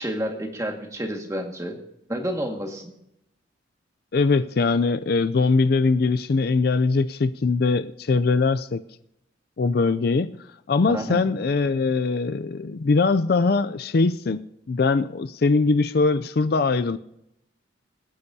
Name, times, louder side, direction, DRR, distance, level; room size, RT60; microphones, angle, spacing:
voice 1, 0.0-1.8 2.1-2.9 10.9-11.2, equal, 15° right, 2 dB, 1.8 m, -29 dB
voice 2, 4.1-8.8 9.6-10.4 10.7-17.0, left 4 dB, 50° left, 12 dB, 0.4 m, -21 dB
25.0 x 9.9 x 2.8 m, 0.82 s
head